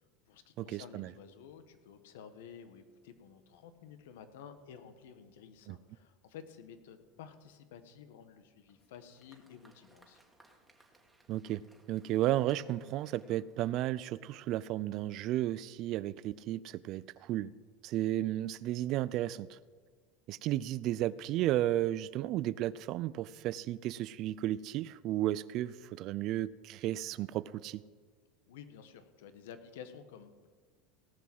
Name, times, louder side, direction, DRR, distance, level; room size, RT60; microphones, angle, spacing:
voice 1, 0.0-10.2 28.5-30.5, left 7 dB, 85° left, 9 dB, 1.2 m, -52 dB
voice 2, 0.6-1.1 5.7-5.8 11.3-11.6 11.9-17.5 17.8-19.6 20.3-27.8, right 14 dB, 55° right, 19 dB, 0.4 m, -33 dB
Applause, 8.7-14.2, right 2 dB, 10° right, 1.8 m, -66 dB
17.5 x 6.1 x 7.7 m, 1.5 s
supercardioid pair, 120°, 0 cm